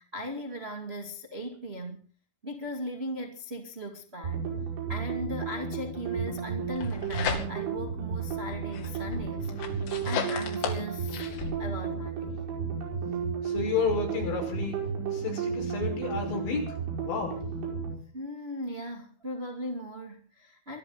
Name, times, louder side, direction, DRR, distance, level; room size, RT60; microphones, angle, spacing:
voice 1, 0.0-2.1 2.4-4.4 4.9-11.2 11.6-12.4 18.1-20.8, equal, 45° right, 0.8 m, -38 dB
sound 1, 4.2-18.0, right 5 dB, 80° right, 7.8 m, -33 dB
sound 2, 6.6-7.8 8.3-11.5, left 6 dB, 80° left, 5.1 m, -35 dB
voice 2, 13.4-14.8 15.1-17.4, left 5 dB, 65° left, 7.5 m, -31 dB
23.5 x 13.0 x 4.0 m
omnidirectional pair, 5.6 m